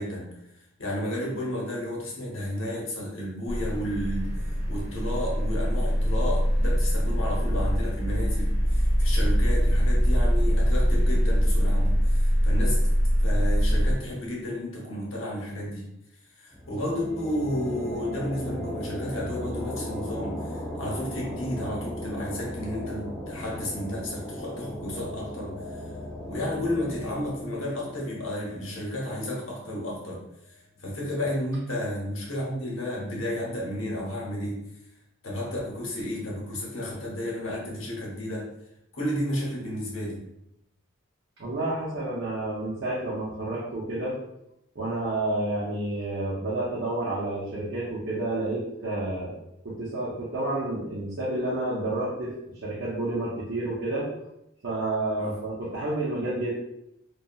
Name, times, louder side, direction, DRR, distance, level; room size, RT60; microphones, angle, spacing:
voice 1, 0.0-12.9 13.2-15.8 16.4-25.9 26.3-34.6 35.2-38.5 38.9-40.2 55.2-55.4, left 1 dB, 80° left, -3 dB, 0.9 m, -32 dB
sound 1, 3.5-13.9, equal, 35° left, 0.8 m, -23 dB
sound 2, 16.5-29.9, equal, ahead, 0.5 m, -37 dB
voice 2, 41.4-44.1 44.8-49.4 49.6-54.1 54.6-56.5, right 2 dB, 60° right, -7 dB, 0.6 m, -30 dB
2.7 x 2.2 x 2.2 m, 0.83 s
head